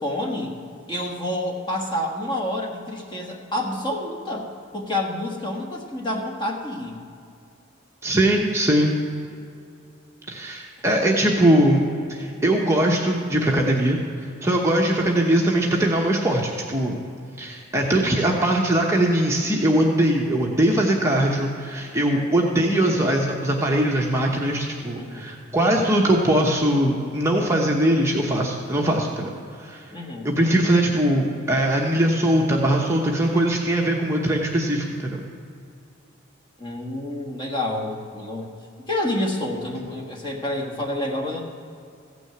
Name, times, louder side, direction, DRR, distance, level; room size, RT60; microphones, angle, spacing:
voice 1, 0.0-0.6 0.9-4.5 4.7-7.0 17.8-18.2 24.9-25.3 29.9-30.3 36.6-38.5 38.8-41.4, left 1 dB, 25° left, 0 dB, 1.4 m, -28 dB
voice 2, 8.0-8.9 10.3-11.8 12.1-14.0 14.4-17.0 17.4-29.8 30.2-35.2, right 1 dB, 15° right, -1 dB, 0.9 m, -21 dB
15.0 x 6.2 x 7.9 m, 2.4 s
head